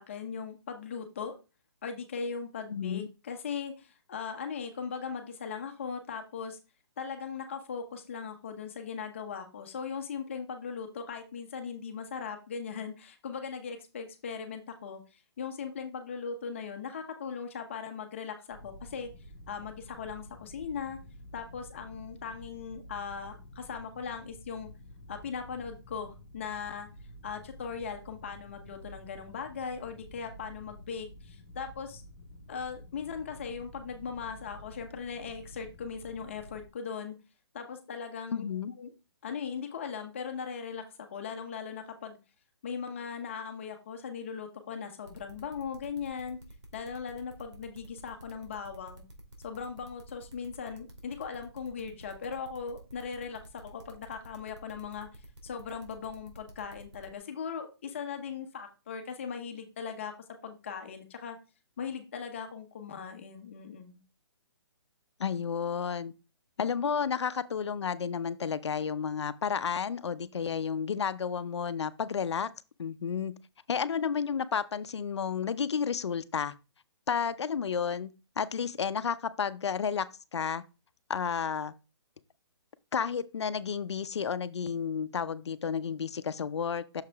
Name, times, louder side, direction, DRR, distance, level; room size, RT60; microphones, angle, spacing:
voice 1, 0.0-1.3 1.8-6.6 7.0-19.1 19.5-21.0 21.3-24.7 25.1-26.9 27.2-32.0 32.5-37.2 37.5-38.4 38.8-38.9 39.2-42.2 42.6-46.4 46.7-49.0 49.4-55.1 55.4-60.1 60.4-61.4 61.8-64.0, left 6 dB, 30° left, 0.8 m, -39 dB
voice 2, 2.7-3.1 38.3-38.7 65.2-66.1 66.6-72.5 72.8-73.3 73.7-76.5 77.1-78.1 78.4-80.1 80.3-80.6 81.1-81.7 82.9-87.0, left 7 dB, 80° left, 0.6 m, -31 dB
sound 1, 18.5-36.7, equal, 5° left, 1.5 m, -50 dB
sound 2, 45.1-57.2, right 1 dB, 85° right, 2.5 m, -51 dB
6.6 x 4.8 x 3.5 m
hypercardioid pair, 175°, 14 cm